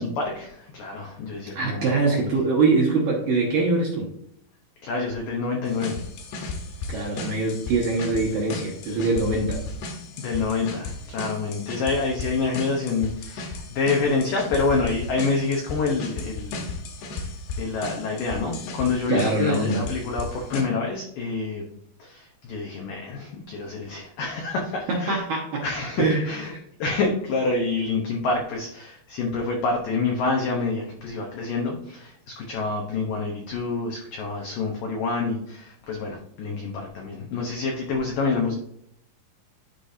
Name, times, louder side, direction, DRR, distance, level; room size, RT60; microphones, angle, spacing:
voice 1, 0.0-2.3 4.8-6.0 10.2-16.7 17.0-17.3 17.6-21.7 22.0-25.2 25.6-26.5 26.8-38.5, left 4 dB, 85° left, 0 dB, 1.9 m, -27 dB
voice 2, 1.6-4.1 6.9-9.6 19.1-19.8 24.9-25.7 26.0-26.3, right 3 dB, 70° right, -2 dB, 2.3 m, -23 dB
sound 1, 5.7-20.6, left 3 dB, 70° left, 3.0 m, -35 dB
12.0 x 5.0 x 2.7 m, 0.73 s
omnidirectional pair, 5.5 m